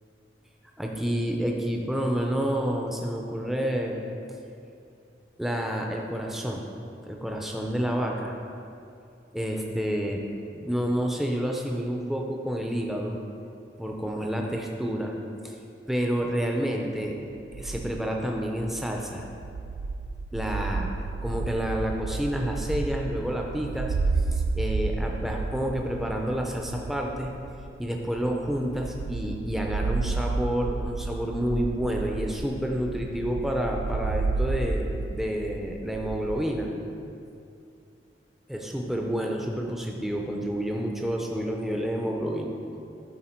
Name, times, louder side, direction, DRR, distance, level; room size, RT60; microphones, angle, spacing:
voice 1, 0.8-4.0 5.4-6.7 7.1-8.4 9.3-10.2 10.5-13.2 13.8-15.2 15.4-15.6 15.9-17.2 17.6-19.3 20.3-20.9 21.2-23.9 24.3-27.3 27.8-36.7 38.5-42.5, equal, ahead, 0 dB, 0.5 m, -29 dB
sound 1, 17.5-36.4, right 3 dB, 90° right, 0.3 m, -32 dB
11.5 x 4.4 x 4.4 m, 2.6 s
head